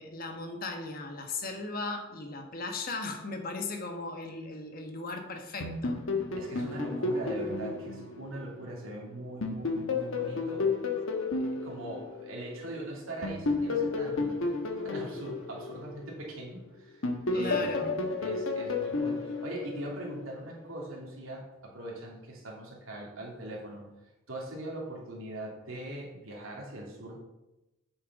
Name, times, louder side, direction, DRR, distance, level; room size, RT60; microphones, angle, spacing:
voice 1, 0.0-6.0 17.3-18.0, left 3 dB, 45° left, 4 dB, 1.1 m, -37 dB
sound 1, 5.6-8.9 9.4-12.7 13.2-16.5 17.0-20.3, left 3 dB, 75° left, 1.2 m, -32 dB
voice 2, 6.4-10.7 11.6-14.4 14.8-17.9 18.2-23.9 24.3-27.2, right 1 dB, 85° right, -2 dB, 2.6 m, -41 dB
8.5 x 7.1 x 4.0 m, 0.97 s
head